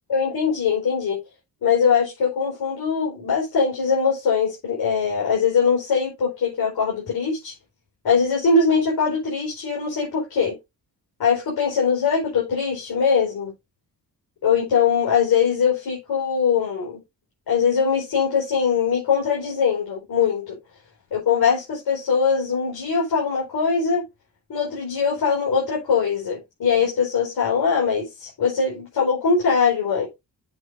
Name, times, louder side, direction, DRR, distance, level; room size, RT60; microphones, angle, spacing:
voice 1, 0.1-1.2 1.6-7.5 8.0-10.6 11.2-13.5 14.4-17.0 17.5-20.6 21.1-24.0 24.5-30.1, left 6 dB, 75° left, 4.8 m, -21 dB
8.1 x 7.5 x 2.7 m
cardioid pair, 80°, 37 cm